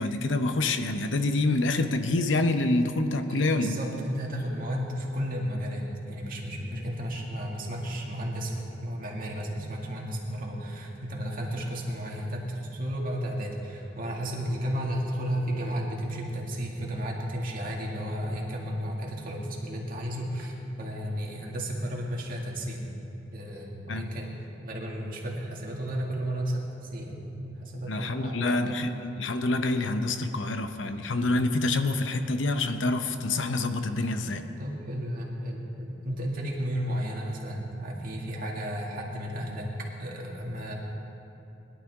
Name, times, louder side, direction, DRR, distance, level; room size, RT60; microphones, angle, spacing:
voice 1, 0.0-3.8 23.9-24.1 27.9-34.4, left 2 dB, 75° left, 8 dB, 0.8 m, -27 dB
voice 2, 3.3-22.8 23.3-24.3 24.6-28.8 34.2-39.7 40.0-40.7, equal, 50° right, -2 dB, 2.1 m, -33 dB
21.0 x 11.5 x 3.6 m, 2.9 s
head